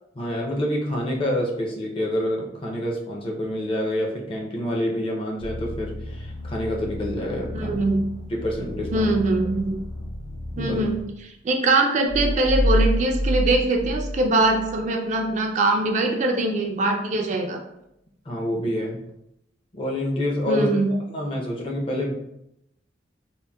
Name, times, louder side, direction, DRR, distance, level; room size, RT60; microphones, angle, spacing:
voice 1, 0.1-7.7 8.3-9.1 10.5-10.8 18.3-19.0 19.7-20.7 21.1-22.1, left 1 dB, 30° left, -1 dB, 0.5 m, -27 dB
sound 1, 5.4-11.0, left 1 dB, 85° left, 0.9 m, -35 dB
voice 2, 7.5-8.0 8.9-9.8 10.6-11.0 11.4-17.6 20.5-20.9, right 2 dB, 40° right, 2 dB, 0.3 m, -22 dB
sound 2, 12.1-14.8, equal, 70° left, 1.3 m, -24 dB
3.7 x 2.0 x 2.2 m, 0.82 s
head